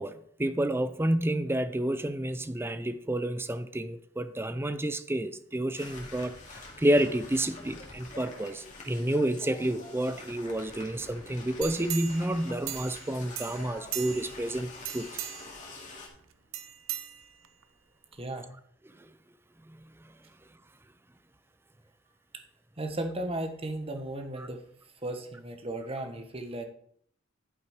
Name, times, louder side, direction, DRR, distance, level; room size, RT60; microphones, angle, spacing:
voice 1, 0.0-6.4 6.8-15.1 24.4-24.5, right 1 dB, 10° right, 12 dB, 0.5 m, -30 dB
sound 1, 5.7-16.1, left 2 dB, 40° left, 2.5 m, -46 dB
sound 2, 11.6-13.1 13.3-14.4 14.8-15.6 16.5-17.6 18.1-18.2, right 13 dB, 90° right, 0.8 m, -38 dB
voice 2, 18.1-18.5 22.8-24.6 25.0-26.6, right 1 dB, 30° right, 6 dB, 1.2 m, -35 dB
11.5 x 5.9 x 5.1 m, 0.65 s
head